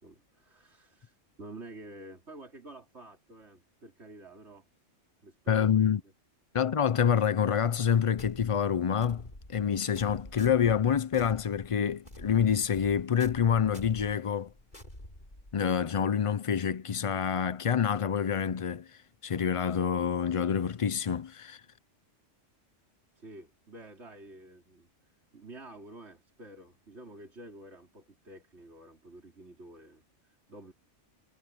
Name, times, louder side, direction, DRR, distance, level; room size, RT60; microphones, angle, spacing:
voice 1, 0.0-4.7 5.2-6.0 23.2-24.9 25.3-30.7, right 2 dB, 60° right, 4.0 m, -49 dB
voice 2, 5.5-6.0 6.5-9.2 9.5-14.5 15.5-21.6, left 8 dB, 60° left, 0.3 m, -27 dB
sound 1, 8.2-15.8, left 1 dB, 35° left, 6.1 m, -48 dB
omnidirectional pair, 1.3 m